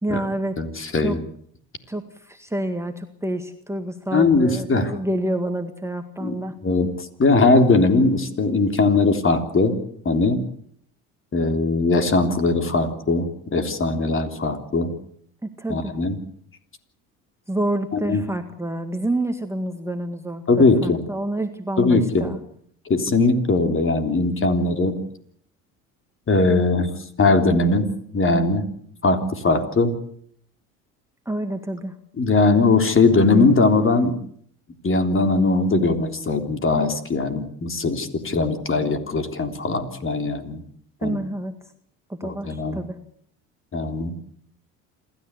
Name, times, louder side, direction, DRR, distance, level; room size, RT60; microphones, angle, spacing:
voice 1, 0.0-0.6 1.0-1.2 1.9-6.6 15.4-16.0 17.5-22.4 31.3-32.0 41.0-41.5 42.1-43.0, right 1 dB, 5° right, 5 dB, 1.9 m, -28 dB
voice 2, 0.6-1.2 4.1-4.9 6.2-6.4 6.6-9.8 10.1-10.4 11.3-14.9 15.7-16.2 18.1-18.2 20.5-21.0 21.8-22.3 22.9-25.0 26.3-26.9 27.2-27.9 28.1-28.7 29.0-30.0 32.2-34.2 34.8-40.6 41.0-41.2 42.2-42.8 43.7-44.1, left 3 dB, 30° left, 6 dB, 3.5 m, -20 dB
27.5 x 13.5 x 8.3 m, 0.64 s
hypercardioid pair, 75°, 40 cm